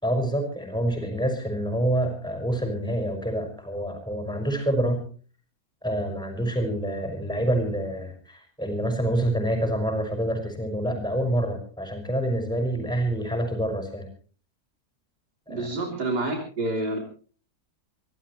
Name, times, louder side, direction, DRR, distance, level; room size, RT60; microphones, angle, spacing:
voice 1, 0.0-5.0 5.8-14.1 15.5-15.7, right 1 dB, ahead, 5 dB, 5.7 m, -27 dB
voice 2, 15.5-17.0, right 2 dB, 85° right, 1 dB, 4.0 m, -28 dB
26.0 x 17.0 x 3.1 m, 0.40 s
omnidirectional pair, 1.7 m